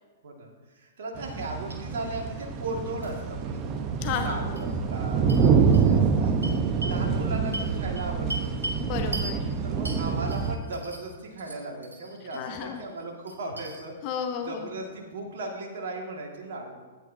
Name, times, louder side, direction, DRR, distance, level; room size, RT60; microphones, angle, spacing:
voice 1, 0.7-3.6 4.2-6.3 6.6-8.5 9.6-13.9 14.5-16.8, right 2 dB, 60° right, 0 dB, 2.0 m, -37 dB
sound 1, 1.1-10.6, right 6 dB, 35° right, 0.9 m, -26 dB
sound 2, 1.2-1.4 1.7-1.8 3.0-3.1 4.1-4.2 4.6-4.7 5.3-5.4 5.7-5.8 6.4-7.0 7.5-8.8 9.1-9.3 9.9-11.1 11.4-12.4 12.8-13.8, right 1 dB, 90° right, 1.7 m, -38 dB
voice 2, 4.0-4.4 8.8-9.5 12.3-12.8 14.0-14.7, left 7 dB, 40° left, 5 dB, 0.9 m, -32 dB
13.5 x 9.2 x 2.8 m, 1.4 s
figure-of-eight pair, 110°, 0 cm